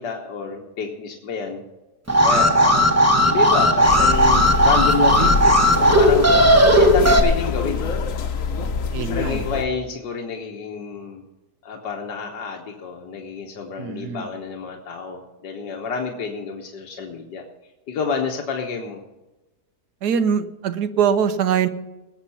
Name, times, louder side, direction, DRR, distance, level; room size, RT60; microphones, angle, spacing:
voice 1, 0.0-1.6 2.2-2.9 3.2-6.3 6.7-7.9 9.1-11.2 11.6-17.4 17.9-19.0, left 5 dB, 85° left, 1 dB, 1.8 m, -29 dB
Alarm, 2.1-7.2, equal, 10° right, 0.8 m, -15 dB
sound 1, 3.8-9.7, left 4 dB, 55° left, 1.2 m, -25 dB
voice 2, 5.0-5.3 8.9-9.4 13.8-14.3 20.0-21.7, right 7 dB, 75° right, 12 dB, 1.4 m, -23 dB
19.0 x 7.3 x 5.7 m, 1.1 s
omnidirectional pair, 1.8 m